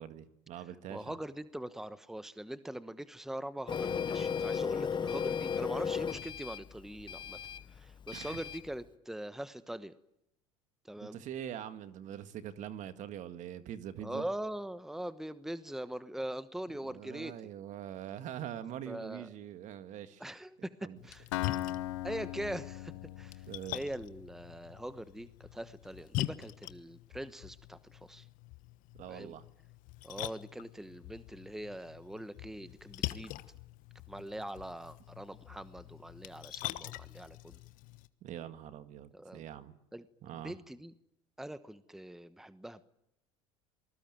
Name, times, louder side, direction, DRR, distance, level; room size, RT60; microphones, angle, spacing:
voice 1, 0.0-1.2 8.1-8.4 11.0-14.3 16.8-20.2 20.6-21.0 23.5-23.8 28.9-29.5 38.2-39.8 40.2-40.6, right 10 dB, 55° right, 11 dB, 1.8 m, -43 dB
voice 2, 0.9-7.4 7.7-9.9 10.9-11.2 14.0-17.3 18.9-19.3 20.2-20.7 21.0-21.2 22.0-23.4 23.7-28.2 29.1-29.3 30.0-33.4 34.1-37.6 39.1-39.4 39.9-40.1 40.3-40.9 41.4-42.8, right 1 dB, 5° right, 14 dB, 1.1 m, -42 dB
Printer, 3.7-8.7, left 7 dB, 30° left, 1.0 m, -36 dB
Splash splatter, 21.0-38.1, left 17 dB, 65° left, 1.2 m, -44 dB
Acoustic guitar, 21.3-25.2, left 15 dB, 80° left, 1.0 m, -40 dB
26.5 x 19.5 x 9.2 m, 0.81 s
hypercardioid pair, 80°, 15 cm